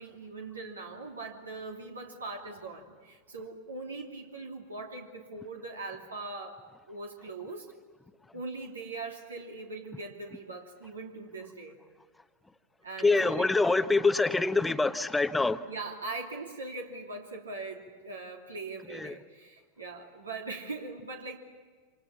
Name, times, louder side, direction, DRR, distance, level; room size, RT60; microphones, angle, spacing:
voice 1, 0.0-7.7 8.3-11.8 12.8-13.5 15.7-21.4, right 3 dB, 75° right, 2.8 m, -41 dB
voice 2, 13.0-15.6 18.9-19.1, left 3 dB, 10° left, 1.1 m, -25 dB
28.5 x 26.5 x 7.3 m
figure-of-eight pair, 90°, 0 cm